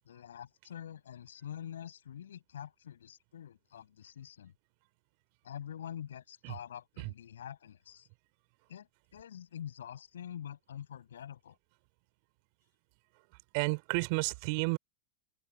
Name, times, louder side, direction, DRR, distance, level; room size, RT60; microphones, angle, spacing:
voice 1, 0.0-4.5 5.4-8.1 8.7-11.6, left 9 dB, 75° left, 7.8 m, -46 dB
voice 2, 13.5-14.8, right 32 dB, 55° right, 4.3 m, -31 dB
hypercardioid pair, 90°, 0 cm